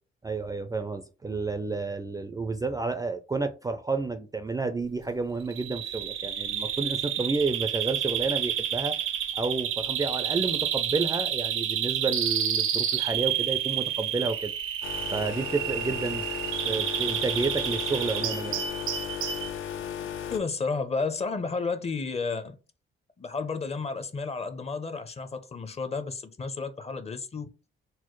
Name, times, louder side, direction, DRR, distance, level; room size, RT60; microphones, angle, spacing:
voice 1, 0.2-9.0 9.3-14.5 15.1-16.2 16.7-18.6, right 3 dB, 15° right, 0.3 m, -30 dB
Bird vocalization bird call bird song, 5.5-19.5, right 10 dB, 75° right, 0.6 m, -30 dB
sound 1, 14.8-20.4, left 9 dB, 75° left, 0.5 m, -36 dB
voice 2, 20.3-22.6 23.2-27.5, left 4 dB, 30° left, 0.6 m, -32 dB
4.2 x 2.0 x 3.0 m
cardioid pair, 80°, 21 cm